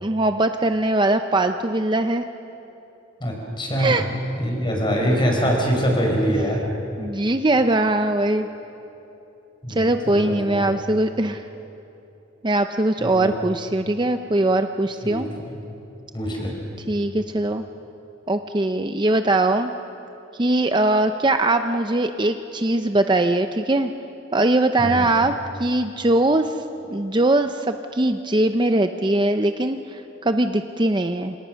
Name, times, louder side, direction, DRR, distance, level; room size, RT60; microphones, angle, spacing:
voice 1, 0.0-2.3 3.8-4.1 7.0-8.5 9.7-11.5 12.4-15.3 16.9-17.6 18.3-19.7 20.3-23.9 24.3-25.3 25.6-31.4, right 2 dB, 25° right, 7 dB, 0.6 m, -21 dB
voice 2, 3.2-4.0 4.4-6.6 9.6-10.7 13.0-13.3 15.0-15.5 16.1-16.5 24.8-25.0, equal, 25° left, 0 dB, 5.1 m, -24 dB
29.5 x 27.0 x 6.4 m, 3.0 s
head